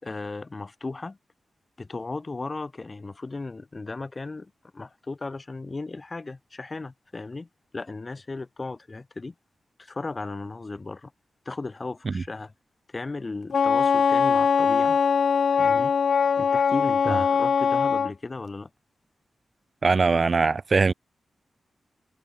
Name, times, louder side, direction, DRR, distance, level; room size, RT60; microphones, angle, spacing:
voice 1, 0.0-1.2 1.8-7.5 7.7-9.3 9.8-11.1 11.5-12.5 12.9-15.0 15.6-15.9 16.4-18.7, left 3 dB, 35° left, 4.1 m, -36 dB
Wind instrument woodwind instrument, 13.5-18.1, left 6 dB, 70° left, 1.5 m, -21 dB
voice 2, 19.8-20.9, right 4 dB, 45° right, 1.6 m, -21 dB
cardioid pair, 75°, 0 cm